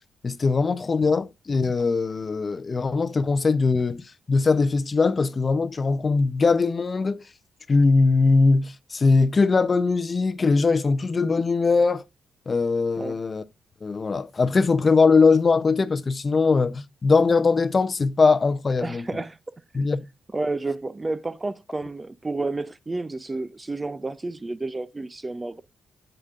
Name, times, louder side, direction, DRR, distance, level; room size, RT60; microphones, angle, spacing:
voice 1, 0.2-7.2 7.7-12.0 12.5-13.4 13.8-19.1 19.7-20.0, left 4 dB, 35° left, 0.6 m, -21 dB
voice 2, 18.8-19.4 19.7-19.8 20.3-25.6, right 2 dB, 20° right, 0.5 m, -30 dB
9.7 x 7.9 x 2.4 m
cardioid pair, 95°, 0 cm